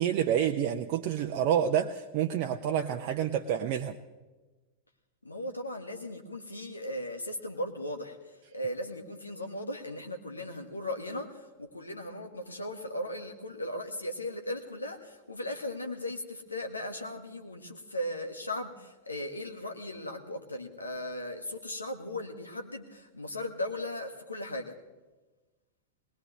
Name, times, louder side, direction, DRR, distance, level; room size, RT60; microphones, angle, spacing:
voice 1, 0.0-4.0, right 9 dB, 45° right, 5 dB, 0.7 m, -28 dB
voice 2, 5.2-24.7, left 1 dB, 80° left, 5 dB, 1.6 m, -37 dB
20.5 x 20.0 x 3.2 m, 1.2 s
figure-of-eight pair, 90°, 0 cm